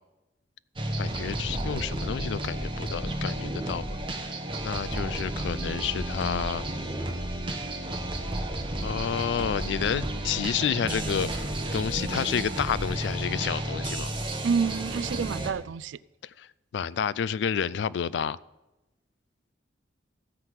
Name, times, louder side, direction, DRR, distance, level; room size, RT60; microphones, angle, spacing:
sound 1, 0.8-15.5, right 1 dB, 30° right, 1.2 m, -32 dB
voice 1, 1.0-4.0 4.6-6.6 8.8-11.3 11.7-14.1 16.4-16.5 16.7-18.4, left 7 dB, 70° left, 0.3 m, -30 dB
voice 2, 14.4-16.0, right 6 dB, 85° right, 0.3 m, -28 dB
14.5 x 5.7 x 7.9 m
head